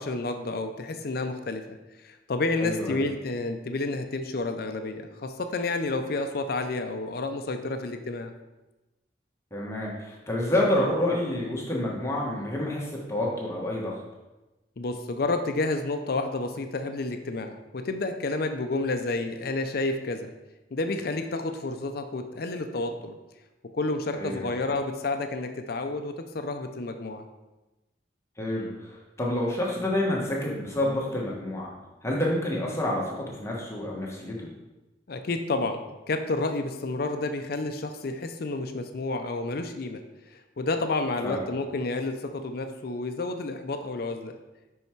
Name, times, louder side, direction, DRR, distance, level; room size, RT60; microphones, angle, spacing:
voice 1, 0.0-1.8 2.0-8.3 14.8-20.3 20.7-23.2 23.7-27.2 35.1-40.0 40.3-44.3, left 2 dB, 55° left, 7 dB, 0.5 m, -30 dB
voice 2, 2.6-3.0 9.5-13.9 24.2-24.5 28.4-31.7 32.0-34.5 41.2-41.4, left 1 dB, 15° left, -3 dB, 1.3 m, -28 dB
5.6 x 5.6 x 4.6 m, 1.1 s
head